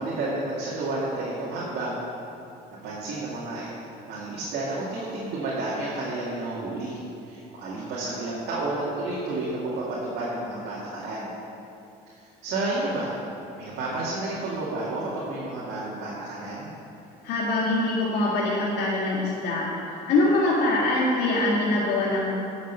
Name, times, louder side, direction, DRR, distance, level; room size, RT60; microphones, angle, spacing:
voice 1, 0.0-2.0 2.8-3.6 4.1-7.0 7.3-11.3 12.2-13.1 13.6-16.7, right 2 dB, 80° right, -7 dB, 2.2 m, -31 dB
voice 2, 17.2-22.3, left 2 dB, 80° left, -6 dB, 1.9 m, -24 dB
10.5 x 6.4 x 6.7 m, 2.7 s
cardioid pair, 110°, 17 cm